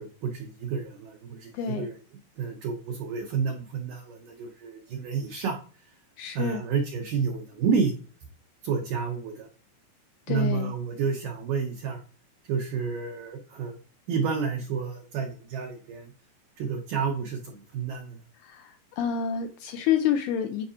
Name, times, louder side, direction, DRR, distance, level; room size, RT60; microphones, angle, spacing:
voice 1, 0.0-2.0 2.4-5.6 6.3-8.0 8.6-9.5 10.3-12.0 12.5-13.8 14.1-16.1 16.6-18.2, right 6 dB, 80° right, 3 dB, 1.9 m, -30 dB
voice 2, 1.5-1.9 6.2-6.6 10.3-10.7 18.4-20.7, left 8 dB, 80° left, 6 dB, 2.4 m, -28 dB
10.5 x 4.7 x 2.8 m, 0.40 s
omnidirectional pair, 5.0 m